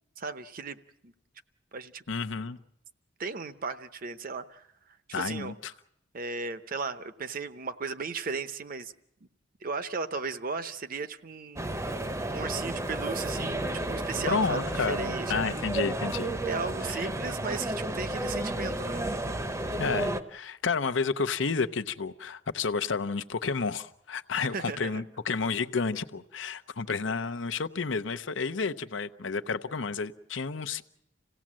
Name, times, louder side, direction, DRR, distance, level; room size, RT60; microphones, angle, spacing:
voice 1, 0.2-0.8 1.0-1.1 1.7-2.0 3.2-4.7 5.1-5.5 6.1-8.9 9.6-11.7 12.3-15.6 16.4-19.4 24.4-25.0, right 4 dB, 50° right, 0.8 m, -36 dB
voice 2, 2.1-2.6 5.1-5.7 14.3-16.3 16.9-17.0 19.8-30.8, left 4 dB, 80° left, 0.8 m, -31 dB
sound 1, 11.6-20.2, right 1 dB, 15° right, 0.7 m, -32 dB
27.0 x 17.0 x 7.5 m
head